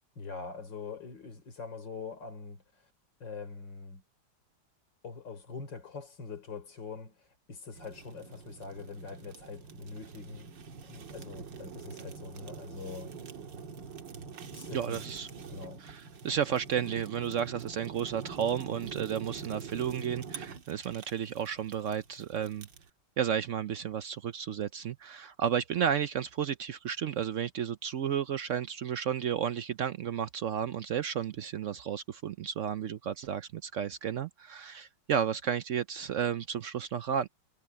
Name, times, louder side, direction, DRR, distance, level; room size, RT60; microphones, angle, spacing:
voice 1, 0.2-2.6 3.2-4.0 5.0-10.5 10.8-13.1 14.5-15.1 15.5-15.8, left 4 dB, 80° left, 4.2 m, -43 dB
Fire, 7.7-22.9, right 5 dB, 85° right, 2.2 m, -45 dB
voice 2, 14.7-15.3 15.8-22.7 23.2-37.3, right 8 dB, 65° right, 0.7 m, -32 dB
omnidirectional pair, 1.9 m